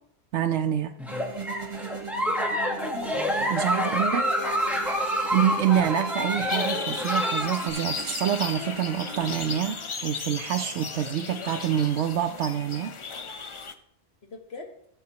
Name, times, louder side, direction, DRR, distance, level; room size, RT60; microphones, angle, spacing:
voice 1, 0.3-0.9 3.5-4.2 5.3-12.9, right 10 dB, 90° right, 5 dB, 0.9 m, -26 dB
Giggle, 1.0-7.7, equal, ahead, 1.0 m, -28 dB
sound 1, 1.1-9.7, right 5 dB, 30° right, 0.9 m, -40 dB
voice 2, 2.5-2.9 3.5-5.2 14.2-14.7, left 3 dB, 70° left, 2 dB, 1.7 m, -39 dB
sound 2, 6.5-13.7, left 5 dB, 40° left, 0.5 m, -35 dB
15.5 x 7.3 x 2.9 m, 0.72 s
omnidirectional pair, 1.1 m